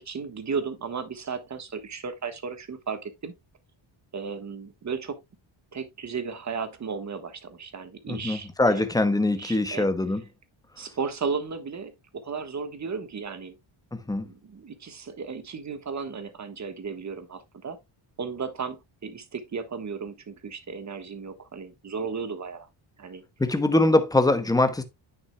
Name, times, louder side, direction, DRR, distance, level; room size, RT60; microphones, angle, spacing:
voice 1, 0.0-3.3 4.1-5.2 5.7-8.9 9.3-9.9 10.8-13.5 14.2-17.8 18.2-22.7 23.0-23.2, right 5 dB, 35° right, 1.4 m, -35 dB
voice 2, 8.1-10.2 13.9-14.3 23.4-24.8, left 2 dB, 10° left, 1.1 m, -23 dB
9.9 x 6.1 x 2.2 m
cardioid pair, 125°, 49 cm